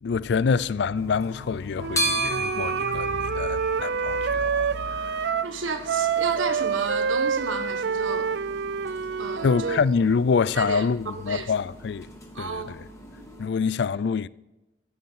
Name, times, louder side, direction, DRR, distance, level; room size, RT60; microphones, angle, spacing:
voice 1, 0.0-5.2 9.4-12.1 12.4-12.8 13.4-14.3, left 5 dB, 60° left, 0.4 m, -26 dB
sound 1, 1.0-13.5, right 2 dB, 15° left, 2.0 m, -36 dB
Wind instrument woodwind instrument, 1.8-5.5 5.9-9.9, right 6 dB, 60° right, 0.4 m, -27 dB
voice 2, 5.4-8.3 9.2-9.8 10.5-11.5 12.3-12.8, right 4 dB, 90° right, 1.4 m, -32 dB
15.0 x 6.7 x 5.6 m
head